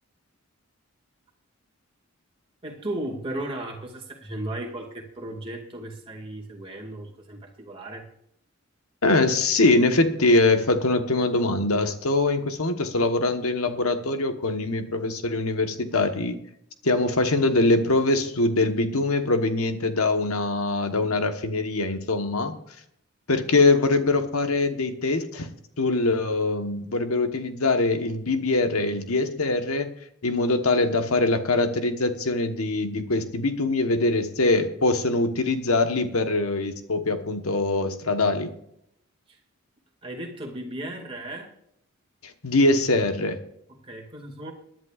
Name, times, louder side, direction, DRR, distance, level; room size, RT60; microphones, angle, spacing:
voice 1, 2.6-8.1 39.3-39.4 40.0-41.5 43.7-44.5, right 1 dB, 25° right, 0 dB, 2.2 m, -35 dB
voice 2, 9.0-16.4 16.8-22.5 23.3-25.5 25.8-29.9 30.2-38.5 42.2-43.4, left 2 dB, 80° left, 7 dB, 1.2 m, -23 dB
23.0 x 10.5 x 2.5 m, 0.74 s
head